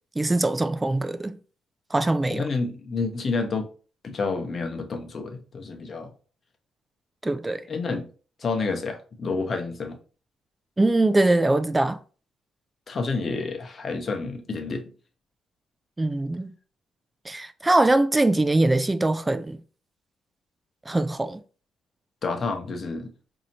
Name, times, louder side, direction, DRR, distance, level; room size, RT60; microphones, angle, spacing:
voice 1, 0.2-1.4 1.9-2.4 7.2-7.6 10.8-12.0 16.0-16.5 17.3-19.6 20.9-21.4, right 2 dB, 15° right, 0.3 m, -22 dB
voice 2, 2.3-3.7 4.0-6.1 7.7-8.1 8.4-10.0 12.9-14.9 22.2-23.1, left 4 dB, 45° left, 0.7 m, -29 dB
4.1 x 2.7 x 2.8 m
cardioid pair, 90°, 0 cm